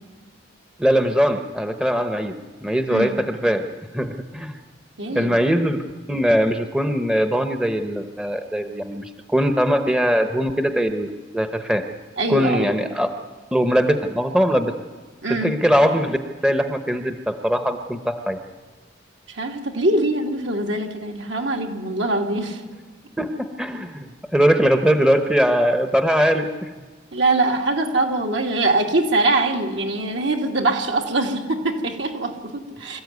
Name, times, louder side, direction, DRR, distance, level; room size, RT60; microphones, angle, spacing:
voice 1, 0.8-2.3 2.6-3.7 3.9-4.6 5.0-5.8 6.1-11.8 12.3-13.1 13.5-14.7 15.3-16.2 16.4-18.4 23.2-26.7, equal, 5° right, 6 dB, 0.9 m, -21 dB
voice 2, 5.0-5.3 12.2-12.8 15.2-15.6 19.3-22.6 27.1-33.0, right 2 dB, 65° right, 2 dB, 2.5 m, -23 dB
25.5 x 14.0 x 9.5 m, 1.3 s
head